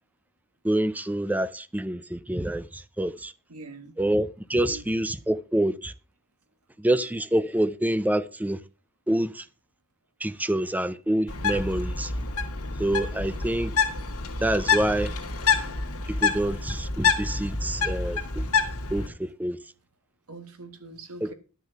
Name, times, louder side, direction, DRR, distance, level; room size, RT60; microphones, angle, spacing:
voice 1, 0.6-3.3 4.0-5.9 6.8-8.6 9.1-9.4 10.2-12.1 12.8-13.7 14.4-15.1 16.1-18.4 18.9-19.6 21.2-21.3, right 1 dB, 5° right, 0.5 m, -27 dB
voice 2, 3.5-3.9 4.6-4.9 17.9-18.0 20.3-21.3, right 3 dB, 80° right, 1.7 m, -43 dB
Bird, 11.3-19.1, left 5 dB, 75° left, 2.1 m, -27 dB
12.0 x 6.4 x 5.8 m
head